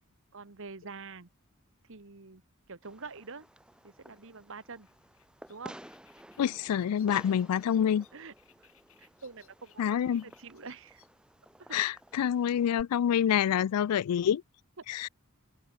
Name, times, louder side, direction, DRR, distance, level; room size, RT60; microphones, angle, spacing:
voice 1, 0.3-1.3 1.9-2.4 2.7-3.5 3.8-4.9 5.5-5.8 6.7-7.4 8.1-8.7 9.0-11.0 11.6-11.8, right 4 dB, 60° right, 1.5 m, -47 dB
Fireworks, 2.8-12.8, equal, 5° right, 2.5 m, -53 dB
sound 1, 3.7-13.1, left 12 dB, 65° left, 6.1 m, -66 dB
voice 2, 6.4-8.0 9.8-10.2 11.7-14.4 14.9-15.1, left 9 dB, 90° left, 0.3 m, -27 dB
head